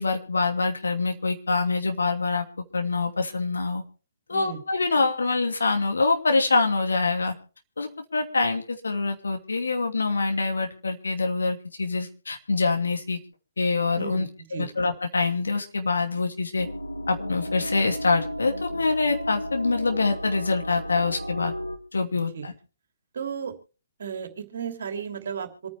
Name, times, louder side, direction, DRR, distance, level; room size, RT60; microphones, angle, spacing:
voice 1, 0.0-2.5 2.7-3.8 4.3-7.3 7.8-13.2 13.6-16.7 17.1-21.5 21.9-22.5, left 3 dB, 70° left, 4 dB, 2.6 m, -25 dB
voice 2, 4.3-4.6 14.0-14.7 22.3-22.5 23.1-23.5 24.0-25.7, right 7 dB, 55° right, 5 dB, 3.0 m, -34 dB
sound 1, 16.6-21.8, equal, 85° left, 1.8 m, -33 dB
26.5 x 9.6 x 3.4 m, 0.37 s
figure-of-eight pair, 125°, 0 cm